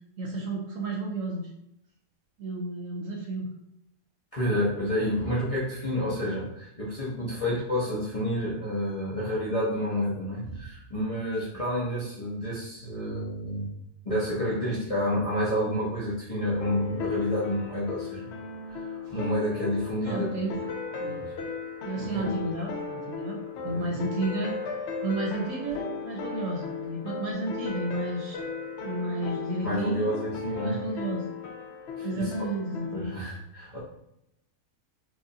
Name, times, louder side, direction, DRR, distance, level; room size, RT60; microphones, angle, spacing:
voice 1, 0.2-1.5 2.4-3.5 20.0-20.6 21.0-21.3 21.8-23.4 23.6-24.6 25.0-28.4 28.8-31.3 32.0-33.2, right 2 dB, 65° right, -1 dB, 1.0 m, -32 dB
voice 2, 4.3-13.7 14.0-18.3 18.7-20.3 22.0-22.3 23.6-23.9 29.6-30.8 32.0-32.3 32.9-33.8, equal, 30° left, -8 dB, 0.7 m, -29 dB
sound 1, 16.6-33.2, left 5 dB, 75° left, 0.6 m, -36 dB
4.6 x 2.5 x 2.7 m, 0.82 s
omnidirectional pair, 1.7 m